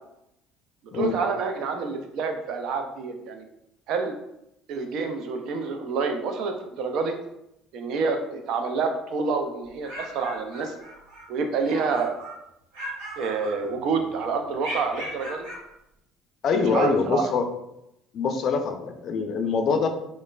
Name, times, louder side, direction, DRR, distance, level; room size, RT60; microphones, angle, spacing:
voice 1, 0.9-3.4 3.9-4.2 4.7-7.1 7.7-10.7 11.3-12.1 13.2-15.5 16.5-17.3, right 4 dB, 70° right, 6 dB, 0.4 m, -28 dB
sound 1, 9.6-11.3 11.6-12.4 12.7-14.0 14.6-15.7, equal, 85° right, 0.8 m, -38 dB
voice 2, 16.4-17.5 18.1-19.9, left 5 dB, 55° left, 6 dB, 0.3 m, -24 dB
3.0 x 2.0 x 2.3 m, 0.83 s
supercardioid pair, 80°, 0 cm